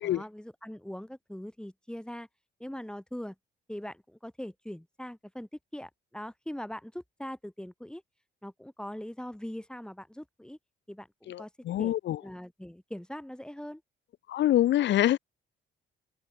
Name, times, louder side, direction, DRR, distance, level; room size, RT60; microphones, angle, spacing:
voice 1, 0.0-2.3 2.6-3.4 3.7-8.0 8.4-10.6 10.9-11.5 11.8-11.9 12.2-13.8, equal, 5° left, 4.1 m, -41 dB
voice 2, 11.3-12.2 14.3-15.2, left 13 dB, 65° left, 0.6 m, -25 dB
open air
cardioid pair, 90°, 20 cm